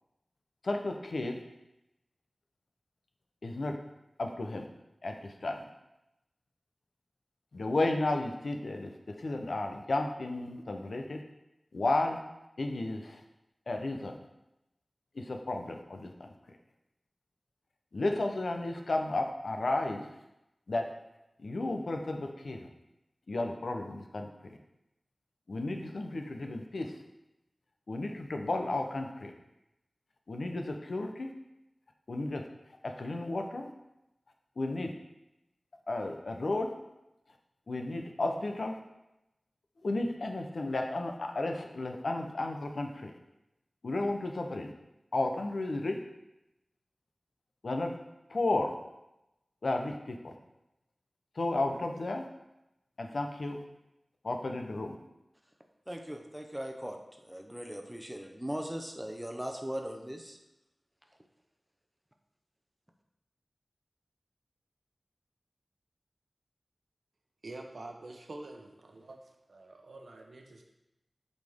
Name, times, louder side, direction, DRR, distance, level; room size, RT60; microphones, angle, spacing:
voice 1, 0.6-1.4 3.4-3.8 4.2-4.7 5.0-5.6 7.5-11.2 11.7-12.2 12.6-13.2 13.7-14.2 15.2-16.3 17.9-20.0 20.7-20.9 21.4-22.7 23.3-24.3 25.5-26.9 27.9-29.3 30.3-31.3 32.1-32.4 32.8-33.7 34.6-34.9 35.9-36.7 37.7-38.8 39.8-43.1 43.8-44.7 45.1-46.0 47.6-47.9 48.3-48.7 49.6-50.3 51.4-52.3 53.0-53.6 54.2-55.0, left 2 dB, 80° left, 4 dB, 0.7 m, -33 dB
voice 2, 55.9-60.4, equal, 10° right, 3 dB, 0.8 m, -39 dB
voice 3, 67.4-70.6, right 2 dB, 85° right, 2 dB, 0.8 m, -47 dB
7.9 x 4.1 x 3.5 m, 0.91 s
wide cardioid pair, 70°, 0 cm